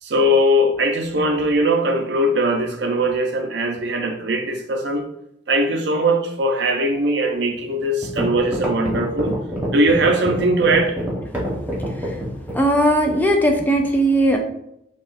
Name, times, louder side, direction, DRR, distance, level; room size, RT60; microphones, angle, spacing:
voice 1, 0.0-5.0 5.5-9.4 9.7-11.0, right 1 dB, 65° right, 4 dB, 0.5 m, -20 dB
sound 1, 7.6-7.7 8.0-12.7, equal, 10° right, 1.0 m, -26 dB
voice 2, 11.6-12.2 12.5-14.4, right 1 dB, 10° left, 3 dB, 0.3 m, -19 dB
5.6 x 2.3 x 2.5 m, 0.79 s
head